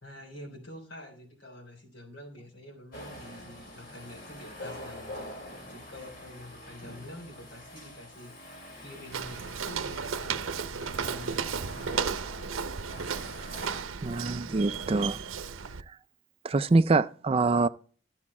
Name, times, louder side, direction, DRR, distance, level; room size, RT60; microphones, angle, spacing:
voice 1, 0.0-12.8, left 1 dB, 65° left, 3.5 m, -47 dB
sound 1, 2.9-13.8, left 1 dB, 50° left, 2.8 m, -46 dB
Walk footsteps, 9.1-15.8, right 6 dB, 85° right, 0.7 m, -34 dB
voice 2, 14.0-15.2 16.4-17.7, right 3 dB, 30° right, 0.4 m, -24 dB
13.0 x 7.2 x 4.3 m
head